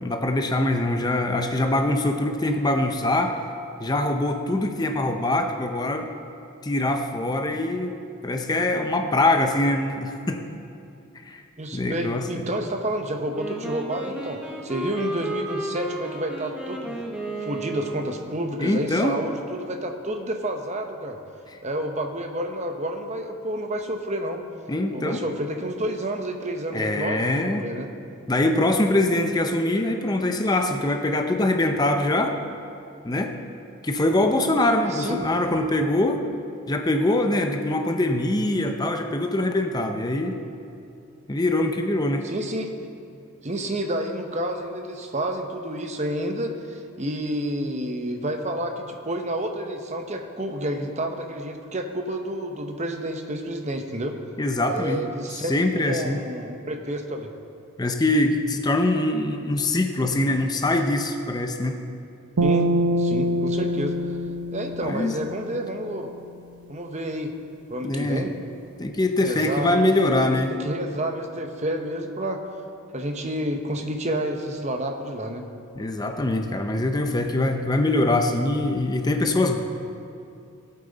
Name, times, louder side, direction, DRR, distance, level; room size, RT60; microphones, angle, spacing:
voice 1, 0.0-3.3 3.8-6.1 6.6-7.9 8.2-10.4 11.3-11.4 11.7-12.3 18.6-19.1 24.7-25.2 26.7-27.7 28.3-32.3 33.0-33.4 33.8-36.2 36.7-40.4 41.3-42.2 54.4-55.0 55.4-56.2 57.8-61.8 64.8-65.1 67.8-68.3 68.8-70.5 75.8-79.6, left 1 dB, 15° left, 5 dB, 0.5 m, -23 dB
voice 2, 11.6-17.1 17.4-21.2 21.6-24.4 24.9-27.9 34.8-35.2 42.2-42.9 43.4-54.2 54.7-57.3 62.4-62.7 63.0-64.2 64.5-66.1 66.7-67.3 67.7-68.3 69.3-70.2 70.6-72.4 72.9-75.4, right 1 dB, 30° right, 4 dB, 0.9 m, -30 dB
Wind instrument woodwind instrument, 13.3-18.5, right 1 dB, 5° right, 0.9 m, -33 dB
sound 1, 62.4-65.7, right 1 dB, 85° right, 0.9 m, -24 dB
17.0 x 8.6 x 4.0 m, 2.6 s
head